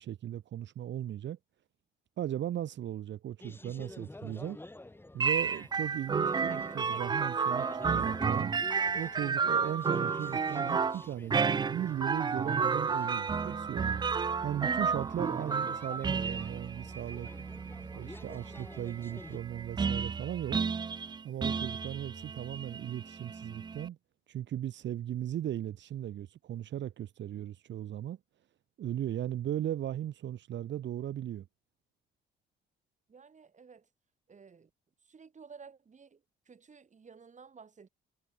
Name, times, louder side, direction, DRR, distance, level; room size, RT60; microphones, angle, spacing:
voice 1, 0.0-1.4 2.2-4.6 5.1-8.5 8.9-14.0 14.4-17.3 17.9-20.6 21.2-24.0 24.3-28.2 28.8-31.5, right 11 dB, 65° right, 1.4 m, -37 dB
sound 1, 3.4-19.4, left 2 dB, 10° left, 1.9 m, -50 dB
sound 2, 5.2-23.9, right 5 dB, 20° right, 0.4 m, -32 dB
voice 2, 33.1-33.9 34.3-34.7 35.0-37.9, right 5 dB, 40° right, 4.6 m, -54 dB
cardioid pair, 90°, 20 cm